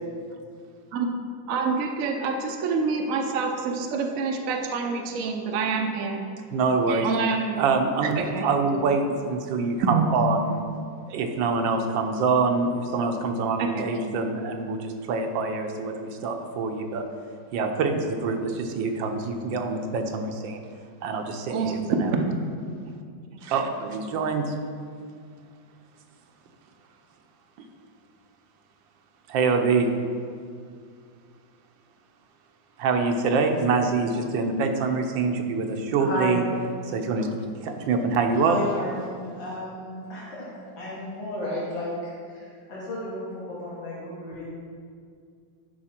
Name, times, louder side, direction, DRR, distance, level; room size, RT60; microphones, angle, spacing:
voice 1, 1.5-6.3 7.0-7.6 8.2-8.5 8.7-8.8 9.9-10.0 13.6-13.9 21.5-22.5, right 4 dB, 60° right, 3 dB, 1.0 m, -27 dB
voice 2, 6.5-7.1 7.6-10.6 11.1-17.1 17.5-20.6 21.0-21.8 23.4-24.5 29.3-29.9 32.8-36.4 36.8-38.6, right 4 dB, 80° right, 5 dB, 1.5 m, -25 dB
voice 3, 36.0-36.4 38.4-40.5 40.8-41.9 42.2-44.4, left 1 dB, 85° left, -7 dB, 2.3 m, -33 dB
11.0 x 5.0 x 4.4 m, 2.2 s
omnidirectional pair, 2.0 m